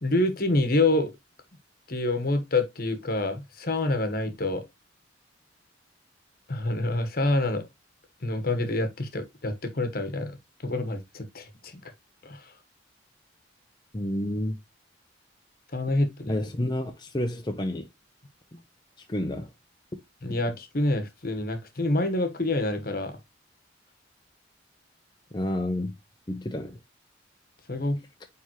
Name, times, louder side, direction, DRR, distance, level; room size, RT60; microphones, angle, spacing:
voice 1, 0.0-1.1 1.9-4.6 6.5-7.6 8.2-10.3 10.6-11.8 12.2-12.4 15.7-16.4 20.2-23.2 27.7-28.0, left 2 dB, 50° left, 1.2 m, -27 dB
voice 2, 13.9-14.6 16.3-17.9 18.5-18.6 19.1-19.5 25.3-25.9 26.3-26.8, left 1 dB, 25° left, 0.7 m, -29 dB
9.1 x 3.5 x 3.0 m
head